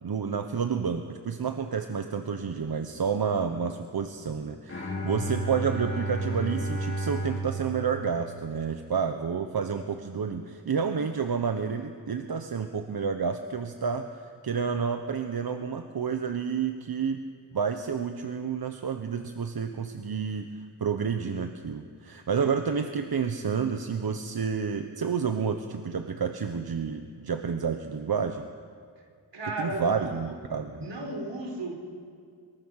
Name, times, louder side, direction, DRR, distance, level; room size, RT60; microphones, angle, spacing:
voice 1, 0.0-14.1 14.4-17.2 17.5-20.5 20.8-28.4 29.6-30.8, right 6 dB, 60° right, 6 dB, 1.1 m, -30 dB
Bowed string instrument, 4.7-8.8, right 1 dB, 35° left, 4.5 m, -33 dB
voice 2, 29.3-30.3 30.7-31.7, right 1 dB, 80° right, 2 dB, 4.1 m, -34 dB
23.5 x 22.5 x 6.6 m, 2.2 s
wide cardioid pair, 95°, 41 cm